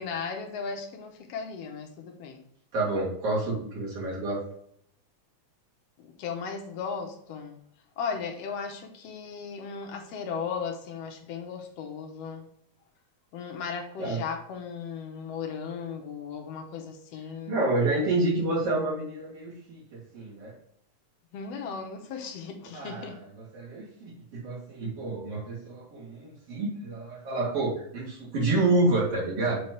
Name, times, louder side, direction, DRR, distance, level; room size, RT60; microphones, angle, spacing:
voice 1, 0.0-2.4 6.0-7.6 8.0-12.5 13.3-17.6 21.3-23.2, left 6 dB, 70° left, 4 dB, 1.7 m, -36 dB
voice 2, 2.7-4.4 14.0-14.2 17.5-20.5 22.7-23.3 23.5-29.6, right 2 dB, 55° right, -7 dB, 3.8 m, -28 dB
7.1 x 4.4 x 3.2 m, 0.69 s
omnidirectional pair, 3.4 m